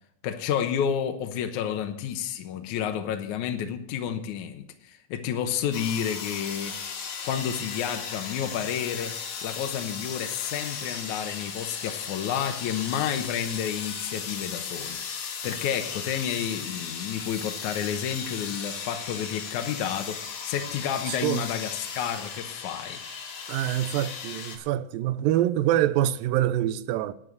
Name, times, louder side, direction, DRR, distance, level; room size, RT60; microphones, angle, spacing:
voice 1, 0.2-6.8 7.2-23.0, left 9 dB, 70° left, 2.1 m, -30 dB
sound 1, 5.7-24.6, left 6 dB, 90° left, 3.7 m, -36 dB
voice 2, 21.1-21.5 23.5-27.1, right 13 dB, 85° right, 2.3 m, -25 dB
10.0 x 9.8 x 7.7 m
omnidirectional pair, 4.0 m